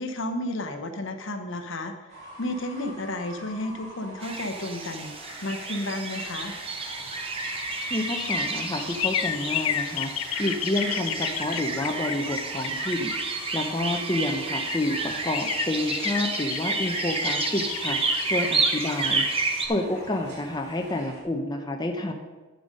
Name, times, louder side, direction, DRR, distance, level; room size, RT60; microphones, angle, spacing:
voice 1, 0.0-1.9 2.4-5.1 5.4-6.5 18.3-18.5, left 1 dB, 60° left, 6 dB, 0.9 m, -32 dB
Fowl / Bird, 2.1-21.2, equal, 50° right, 3.1 m, -44 dB
sound 1, 4.2-19.7, right 3 dB, 25° right, 0.9 m, -30 dB
sound 2, 7.0-13.8 14.4-14.5 14.7-20.5 20.8-20.9, left 10 dB, 75° left, 0.6 m, -33 dB
voice 2, 7.9-13.1 13.5-22.1, left 1 dB, 20° left, 3 dB, 0.7 m, -29 dB
9.6 x 7.4 x 5.2 m, 1.3 s
head